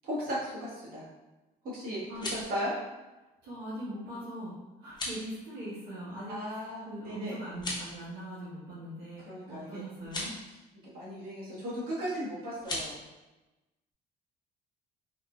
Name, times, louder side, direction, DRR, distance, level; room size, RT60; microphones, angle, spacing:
voice 1, 0.0-1.0 1.6-2.7 6.3-7.3 9.2-9.8 10.8-13.0, equal, 60° right, -7 dB, 1.5 m, -36 dB
sound 1, 2.0-2.6 4.8-5.2 7.5-8.0 10.0-10.3 12.6-12.9, left 1 dB, 25° left, 0.8 m, -37 dB
voice 2, 3.4-4.5 4.8-10.3, right 1 dB, 85° right, -10 dB, 1.2 m, -41 dB
3.7 x 2.6 x 2.3 m, 1.1 s
cardioid pair, 110°, 17 cm